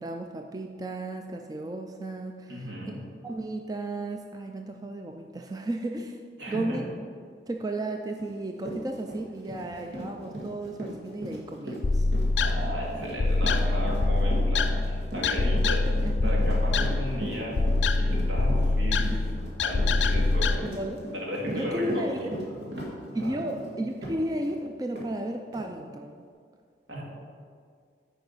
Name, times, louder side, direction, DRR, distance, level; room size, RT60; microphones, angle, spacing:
voice 1, 0.0-2.7 3.2-6.2 6.5-6.8 7.5-12.1 16.0-16.3 20.8-21.1 21.5-22.2 23.1-26.2, right 1 dB, 20° right, 4 dB, 0.3 m, -34 dB
voice 2, 2.5-3.0 6.4-6.8 12.4-15.9 16.2-19.3 19.6-20.6 21.1-22.6 23.2-23.4 26.9-27.0, equal, 80° right, -3 dB, 2.0 m, -35 dB
Run, 8.2-8.3 8.6-24.6 24.9-25.1 25.5-25.7, equal, 65° right, 1.8 m, -38 dB
sound 1, 11.8-20.6, left 2 dB, 80° left, 0.5 m, -25 dB
9.2 x 4.9 x 5.4 m, 2.1 s
head